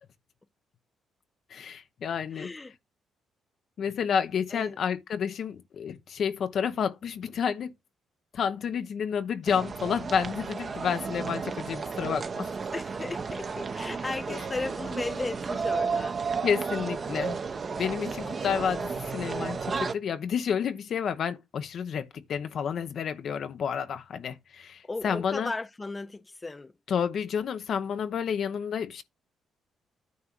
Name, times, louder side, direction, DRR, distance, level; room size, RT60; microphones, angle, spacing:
voice 1, 1.5-2.5 3.8-7.7 8.3-12.5 14.3-14.4 16.4-17.4 17.7-25.5 26.9-29.0, left 7 dB, 60° left, 0.9 m, -30 dB
voice 2, 2.3-2.8 4.5-4.8 5.1-5.3 12.7-16.2 16.7-17.2 18.3-18.7 24.8-26.7, left 3 dB, 20° left, 0.5 m, -36 dB
sound 1, 9.5-19.9, right 5 dB, 40° right, 1.0 m, -33 dB
9.6 x 3.7 x 6.0 m
cardioid pair, 90°, 0 cm